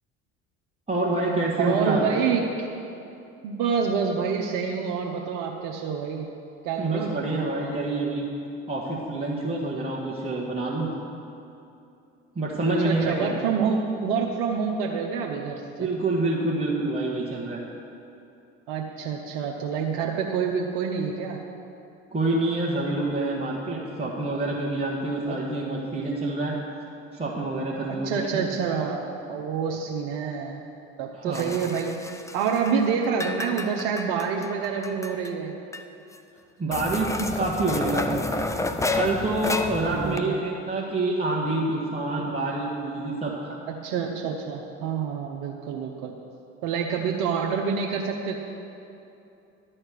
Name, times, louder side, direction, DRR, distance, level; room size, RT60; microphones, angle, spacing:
voice 1, 0.9-2.1 6.8-8.3 8.7-10.9 12.3-13.4 15.8-17.6 22.1-26.6 27.1-28.4 31.1-31.5 36.6-38.4 38.9-43.6, right 2 dB, 15° right, -5 dB, 1.5 m, -27 dB
voice 2, 1.6-2.7 3.4-6.2 6.6-7.2 12.8-15.9 18.7-21.4 25.3-25.4 27.8-30.6 31.0-35.5 39.7-40.4 42.2-42.4 43.7-46.1 46.6-48.4, right 6 dB, 70° right, 0 dB, 0.9 m, -27 dB
sound 1, 31.3-32.8 33.0-35.3 35.7-35.8 36.1-36.2 36.7-40.2, left 2 dB, 10° left, 0.6 m, -31 dB
11.5 x 4.4 x 8.2 m, 2.7 s
hypercardioid pair, 70°, 34 cm